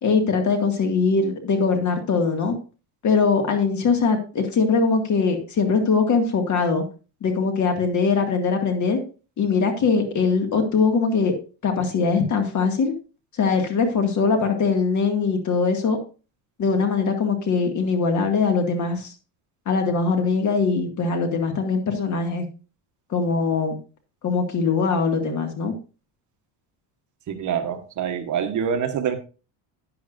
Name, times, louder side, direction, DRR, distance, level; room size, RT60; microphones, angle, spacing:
voice 1, 0.0-2.5 3.0-6.8 7.2-9.0 9.4-11.3 11.6-12.9 13.4-16.0 16.6-19.1 19.7-22.5 23.1-23.8 24.2-25.7, left 4 dB, 45° left, 5 dB, 2.1 m, -21 dB
voice 2, 27.3-29.2, right 8 dB, 45° right, 6 dB, 1.3 m, -25 dB
11.0 x 10.0 x 2.6 m, 0.34 s
cardioid pair, 140°, 42 cm